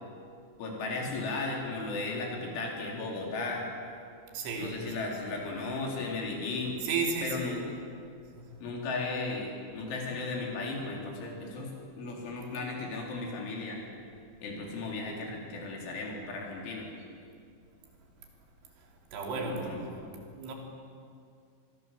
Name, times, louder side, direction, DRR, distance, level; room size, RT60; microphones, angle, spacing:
voice 1, 0.6-3.6 4.6-6.8 7.2-7.6 8.6-13.8 14.4-16.9 19.3-19.8, left 3 dB, 85° left, 6.5 m, -35 dB
voice 2, 4.3-5.3 6.8-7.6 19.1-19.8 20.1-20.5, right 4 dB, 85° right, 5.7 m, -34 dB
26.0 x 21.5 x 7.7 m
omnidirectional pair, 5.3 m